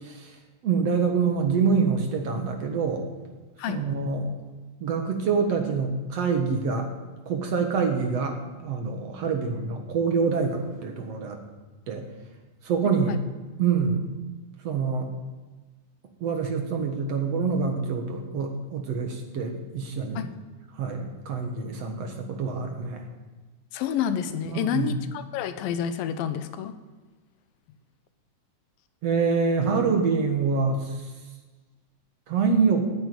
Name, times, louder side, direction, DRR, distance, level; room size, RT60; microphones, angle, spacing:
voice 1, 0.6-3.1 3.7-4.3 4.8-6.9 7.3-11.4 11.9-12.1 12.6-13.2 13.6-14.0 14.6-15.1 16.2-20.2 20.8-23.0 24.5-24.9 29.0-30.9 32.3-32.9, right 5 dB, 55° right, 3 dB, 2.1 m, -26 dB
voice 2, 12.8-13.2 20.2-20.3 23.7-26.7, left 8 dB, 85° left, 11 dB, 2.6 m, -29 dB
10.5 x 10.0 x 9.2 m, 1.3 s
omnidirectional pair, 4.0 m